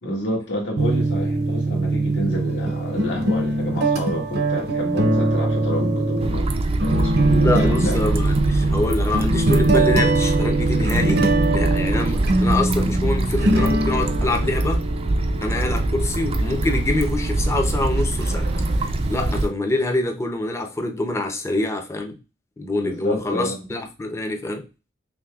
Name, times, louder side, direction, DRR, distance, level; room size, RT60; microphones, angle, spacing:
voice 1, 0.0-6.5 6.8-8.0 15.5-15.6 22.8-23.7, left 1 dB, 70° left, 1.6 m, -29 dB
sound 1, 0.8-19.5, right 2 dB, 60° right, 0.7 m, -23 dB
sound 2, 6.2-19.5, right 2 dB, 30° right, 0.4 m, -23 dB
voice 2, 7.4-14.8 15.4-18.5 18.8-22.2 22.6-24.7, left 2 dB, 15° left, 0.6 m, -25 dB
5.8 x 2.2 x 2.3 m
head